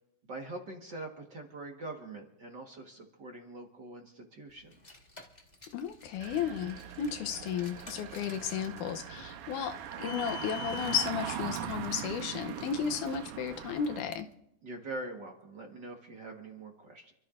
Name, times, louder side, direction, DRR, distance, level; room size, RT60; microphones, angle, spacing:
voice 1, 0.3-4.9 14.6-17.1, right 2 dB, 45° right, 1 dB, 1.6 m, -43 dB
Car, 4.6-14.2, left 9 dB, 45° left, 0.5 m, -49 dB
voice 2, 5.7-14.3, left 8 dB, 85° left, 7 dB, 2.3 m, -34 dB
Engine, 6.2-14.0, right 10 dB, 85° right, 2.4 m, -41 dB
28.5 x 13.5 x 2.5 m, 0.85 s
omnidirectional pair, 3.6 m